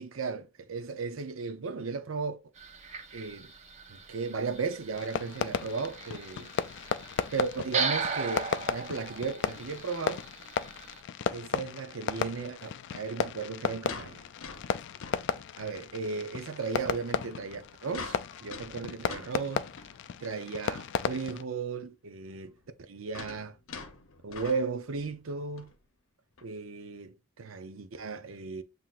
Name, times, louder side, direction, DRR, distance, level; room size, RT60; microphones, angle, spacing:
voice 1, 0.0-2.4 3.1-3.5 3.9-6.5 7.3-10.2 11.3-14.2 15.6-19.7 20.2-22.6 22.9-23.6 24.2-25.7 26.4-28.6, right 4 dB, 80° right, 0.6 m, -35 dB
sound 1, 2.6-11.0, right 5 dB, 35° right, 0.8 m, -38 dB
Fireworks, 4.9-21.4, left 7 dB, 60° left, 0.3 m, -35 dB
sound 2, 13.2-15.9 16.3-16.4 17.3-20.1 20.7-20.8 21.0-21.1 22.4-25.2 25.6-25.7 26.4-26.5, left 4 dB, 90° left, 0.7 m, -45 dB
7.5 x 2.8 x 2.5 m
head